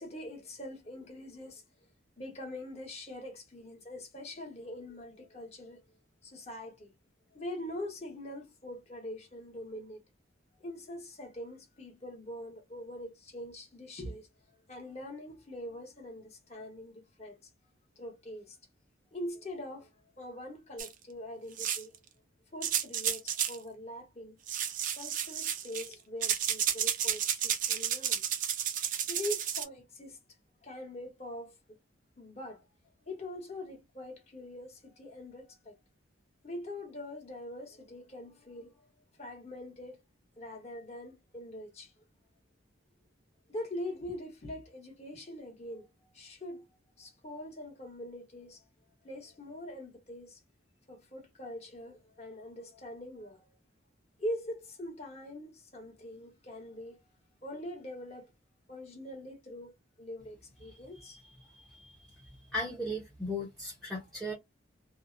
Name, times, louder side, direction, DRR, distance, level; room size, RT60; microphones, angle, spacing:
voice 1, 0.0-1.6 2.2-5.8 6.2-6.9 7.3-10.0 10.6-14.3 14.7-17.4 18.0-18.6 19.1-19.9 20.2-21.9 22.5-24.4 24.9-28.2 29.1-30.2 30.6-31.8 32.2-32.6 33.1-35.7 36.4-38.8 39.2-40.0 40.4-41.9 43.5-45.9 46.1-46.6 47.0-48.6 49.0-50.4 50.9-53.6 54.2-57.0 57.4-58.3 58.7-59.7 60.0-62.5, left 1 dB, 35° left, 1.0 m, -43 dB
sound 1, 20.8-20.9 21.6-22.0 22.6-23.6 24.5-25.9 26.2-29.6, right 9 dB, 40° right, 0.4 m, -32 dB
voice 2, 62.5-64.3, left 1 dB, 5° left, 0.6 m, -36 dB
2.7 x 2.0 x 2.4 m
head